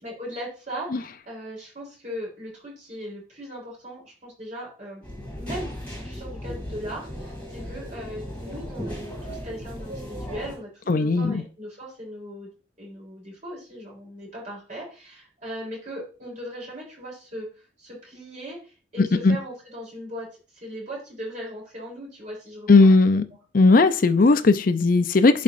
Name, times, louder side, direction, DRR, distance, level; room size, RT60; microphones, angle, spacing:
voice 1, 0.0-12.5 12.8-17.5 17.8-23.0, equal, 40° right, 3.5 m, -38 dB
sound 1, 5.0-10.5, equal, 10° left, 2.6 m, -36 dB
voice 2, 10.9-11.4 19.0-19.4 22.7-23.2 23.5-25.4, left 3 dB, 45° left, 0.5 m, -17 dB
11.0 x 4.2 x 2.5 m
head